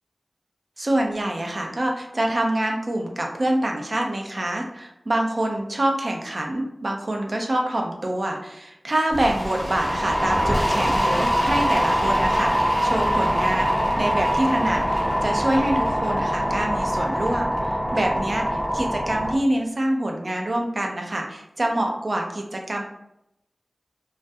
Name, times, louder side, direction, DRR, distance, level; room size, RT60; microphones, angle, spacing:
voice 1, 0.8-22.8, right 1 dB, 50° right, 1 dB, 0.4 m, -26 dB
sound 1, 9.1-19.4, equal, 5° left, 0.6 m, -23 dB
2.3 x 2.0 x 2.6 m, 0.81 s
wide cardioid pair, 65°, 0 cm